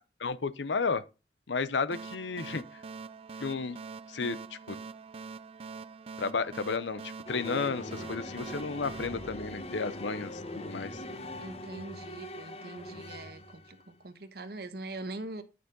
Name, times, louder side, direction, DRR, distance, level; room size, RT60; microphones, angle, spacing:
voice 1, 0.2-1.0 1.5-2.6 3.4-3.8 4.1-4.4 4.7-4.8 6.2-10.9, left 4 dB, 90° left, 0.7 m, -32 dB
sound 1, 1.9-10.2, right 5 dB, 35° right, 0.3 m, -45 dB
sound 2, 7.3-13.8, left 1 dB, 35° left, 1.0 m, -42 dB
voice 2, 11.4-15.4, right 2 dB, 60° right, 1.1 m, -42 dB
9.4 x 6.4 x 3.9 m
head